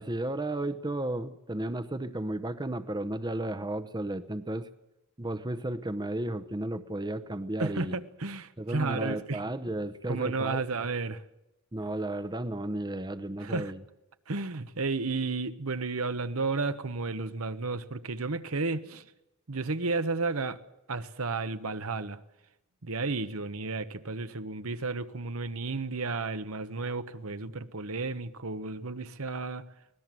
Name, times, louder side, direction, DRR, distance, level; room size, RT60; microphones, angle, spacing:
voice 1, 0.0-4.7 5.2-7.9 8.6-10.7 11.7-13.8, right 1 dB, 20° right, 0.8 m, -33 dB
voice 2, 7.6-9.4 10.1-11.2 13.4-13.7 14.3-19.0 19.5-20.6 20.9-22.2 22.8-29.6, right 3 dB, 70° right, 1.1 m, -32 dB
24.5 x 19.0 x 7.7 m
head